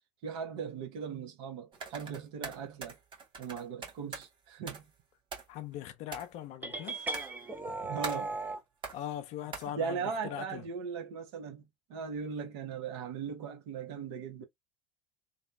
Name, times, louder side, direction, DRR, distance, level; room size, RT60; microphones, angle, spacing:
voice 1, 0.2-3.0 3.4-4.9 7.7-8.4 9.8-14.4, right 6 dB, 60° right, 0.9 m, -39 dB
sound 1, 1.7-4.3 4.7-4.9 5.3-5.7 6.1-6.3 7.1-7.6 8.0-8.3 8.8-9.1 9.5-9.7, right 5 dB, 30° right, 1.0 m, -42 dB
voice 2, 5.5-7.1 8.9-10.7, left 11 dB, 45° left, 0.5 m, -41 dB
sound 2, 6.6-8.6, right 2 dB, 10° right, 0.5 m, -37 dB
2.6 x 2.1 x 2.3 m
figure-of-eight pair, 65°, 16 cm